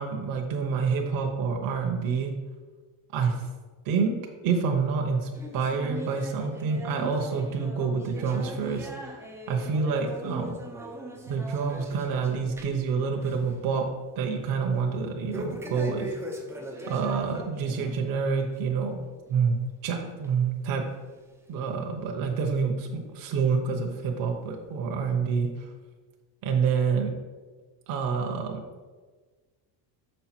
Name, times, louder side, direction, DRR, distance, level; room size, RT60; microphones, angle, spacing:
voice 1, 0.0-2.3 3.1-3.4 3.9-4.1 4.4-8.9 9.5-10.5 11.3-13.8 14.2-16.1 16.9-19.0 19.3-20.8 21.5-25.5 26.4-27.1 27.9-28.8, right 5 dB, 50° right, 2 dB, 1.0 m, -27 dB
sound 1, 5.3-12.9 13.2-13.5 13.9-14.0 15.3-18.0 18.4-18.6 19.3-19.4 20.2-20.3 21.1-21.2, equal, 5° right, 0.5 m, -40 dB
6.6 x 5.5 x 4.4 m, 1.4 s
cardioid pair, 170°, 44 cm